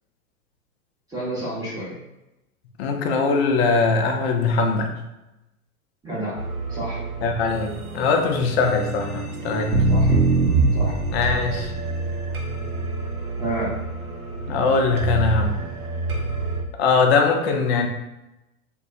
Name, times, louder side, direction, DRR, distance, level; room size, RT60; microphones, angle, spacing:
voice 1, 1.1-2.0 6.0-6.4 6.7-7.0 9.9-10.2 10.7-11.0 13.4-13.7, right 1 dB, 10° right, -8 dB, 0.6 m, -29 dB
voice 2, 2.8-4.9 7.2-9.7 11.1-11.7 14.5-15.7 16.8-17.9, left 4 dB, 50° left, 3 dB, 0.5 m, -21 dB
sound 1, 6.4-16.6, right 3 dB, 90° right, 0.6 m, -25 dB
2.6 x 2.2 x 2.4 m, 0.96 s
hypercardioid pair, 105°, 42 cm